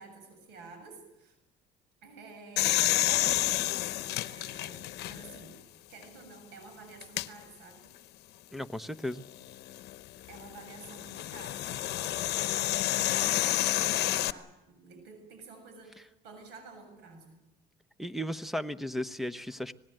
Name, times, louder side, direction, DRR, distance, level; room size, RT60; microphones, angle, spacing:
voice 1, 0.0-1.4 2.0-7.9 10.3-17.4, right 3 dB, 85° right, 7 dB, 7.2 m, -51 dB
sound 1, 2.6-5.5 6.0-6.1 7.0-7.3 9.4-14.3, left 15 dB, 75° left, 0.8 m, -29 dB
voice 2, 8.5-9.2 18.0-19.7, equal, ahead, 12 dB, 0.9 m, -35 dB
26.0 x 19.0 x 7.8 m, 0.89 s
cardioid pair, 110°, 17 cm